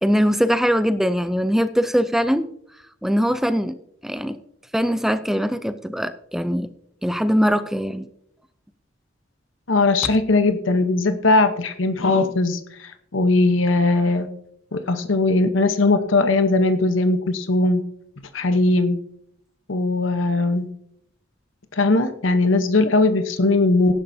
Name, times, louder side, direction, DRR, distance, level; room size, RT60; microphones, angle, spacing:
voice 1, 0.0-2.5 3.0-3.7 4.0-4.4 4.7-6.7 7.0-8.1, equal, ahead, 11 dB, 0.4 m, -21 dB
voice 2, 9.7-14.3 14.7-17.8 18.3-19.0 19.7-20.7 21.7-23.9, left 2 dB, 85° left, 9 dB, 1.0 m, -19 dB
17.5 x 11.0 x 2.7 m, 0.72 s
head